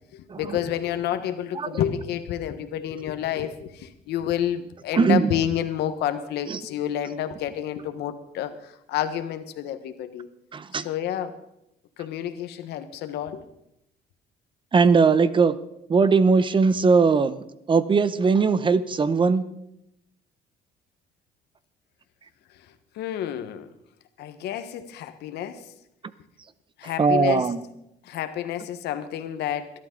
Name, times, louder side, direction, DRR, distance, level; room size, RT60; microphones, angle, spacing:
voice 1, 0.1-10.3 10.8-11.4 12.0-13.4 22.9-23.7 24.2-25.7 26.8-27.5 28.0-29.7, left 10 dB, 80° left, 9 dB, 1.3 m, -29 dB
voice 2, 4.9-5.3 6.5-6.6 10.5-10.9 14.7-15.5 15.9-19.4 26.8-27.6, right 5 dB, 30° right, 15 dB, 0.8 m, -20 dB
21.5 x 12.0 x 3.9 m, 0.82 s
cardioid pair, 110°, 17 cm